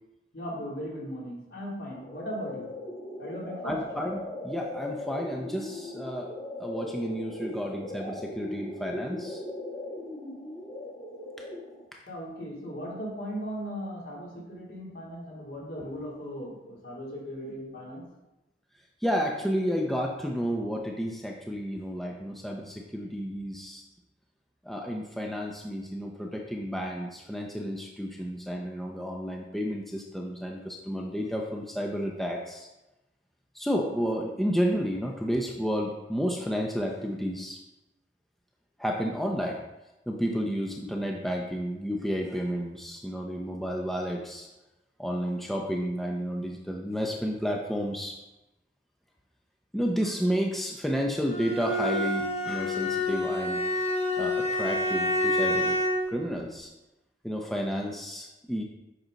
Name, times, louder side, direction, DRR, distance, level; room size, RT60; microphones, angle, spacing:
voice 1, 0.3-2.7 3.2-3.8 12.1-18.0, equal, 65° left, -5 dB, 3.3 m, -37 dB
sound 1, 1.9-11.9, left 1 dB, 20° left, 1.4 m, -39 dB
voice 2, 3.6-6.3 6.6-9.4 19.0-23.8 24.6-32.7 33.5-37.6 38.8-39.6 40.1-44.5 45.0-48.1 49.7-53.6 54.2-55.8 56.1-56.7 57.2-58.6, equal, ahead, 0 dB, 0.6 m, -31 dB
Bowed string instrument, 51.3-56.1, left 1 dB, 35° left, 1.0 m, -28 dB
9.3 x 6.0 x 3.9 m, 0.99 s
head